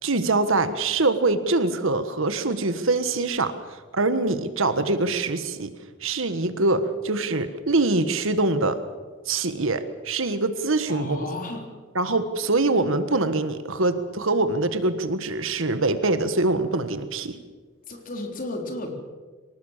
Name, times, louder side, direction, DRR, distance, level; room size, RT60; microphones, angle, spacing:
voice 1, 0.0-5.7 6.0-8.8 9.2-11.2 11.9-17.4, right 2 dB, 65° right, 11 dB, 1.5 m, -24 dB
voice 2, 10.9-11.6 17.8-18.9, left 2 dB, 40° left, 3 dB, 3.8 m, -33 dB
24.5 x 19.0 x 7.4 m, 1.4 s
head